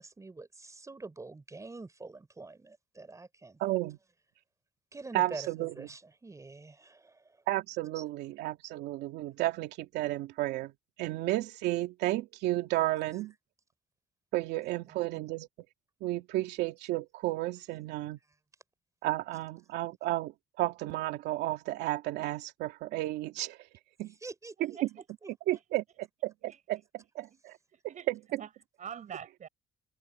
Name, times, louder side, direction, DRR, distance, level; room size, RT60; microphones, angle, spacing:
voice 1, 0.0-3.6 4.9-7.4 8.0-8.1 24.2-24.8 25.2-25.6, right 3 dB, 20° right, 4.0 m, -46 dB
voice 2, 3.6-4.0 5.1-5.7 7.5-10.7 11.0-13.3 14.3-15.5 16.0-18.2 19.0-23.6 24.0-24.1 24.6-24.7 25.5-25.8 26.2-27.5 28.1-28.2, right 16 dB, 85° right, 2.7 m, -32 dB
voice 3, 14.6-15.0 24.6-24.9 26.5-26.6 27.3-27.4 27.7-28.1 28.4-28.5 28.8-29.5, right 8 dB, 45° right, 6.0 m, -45 dB
open air
cardioid pair, 110°, 17 cm